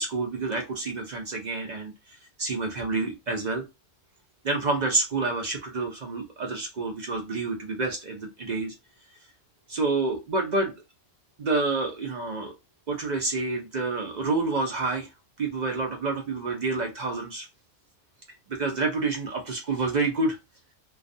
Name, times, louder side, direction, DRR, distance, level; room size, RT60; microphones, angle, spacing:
voice 1, 0.0-1.9 2.4-3.6 4.4-8.7 9.7-10.7 11.4-12.5 12.9-15.1 15.4-17.5 18.5-20.4, right 3 dB, 65° right, 2 dB, 0.4 m, -28 dB
2.3 x 2.2 x 2.6 m, 0.24 s
omnidirectional pair, 1.4 m